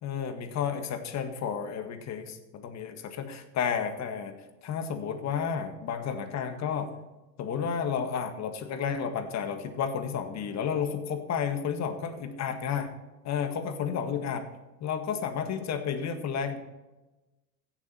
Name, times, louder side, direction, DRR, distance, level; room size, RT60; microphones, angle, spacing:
voice 1, 0.0-4.3 4.6-6.9 7.4-12.9 13.2-14.5 14.8-16.6, left 7 dB, 35° left, 7 dB, 1.7 m, -31 dB
16.0 x 7.4 x 4.4 m, 1.1 s
hypercardioid pair, 95°, 49 cm